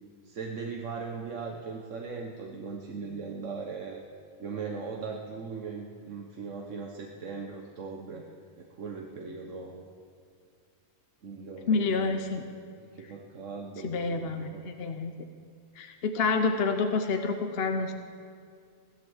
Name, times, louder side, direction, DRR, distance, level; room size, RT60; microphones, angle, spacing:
voice 1, 0.2-4.0 4.4-8.3 8.6-9.9 11.2-12.3 12.9-15.0, right 5 dB, 60° right, 1 dB, 1.4 m, -39 dB
voice 2, 11.7-12.4 13.8-15.1 15.8-17.9, left 4 dB, 50° left, 6 dB, 0.9 m, -28 dB
16.5 x 11.5 x 7.2 m, 2.3 s
omnidirectional pair, 1.5 m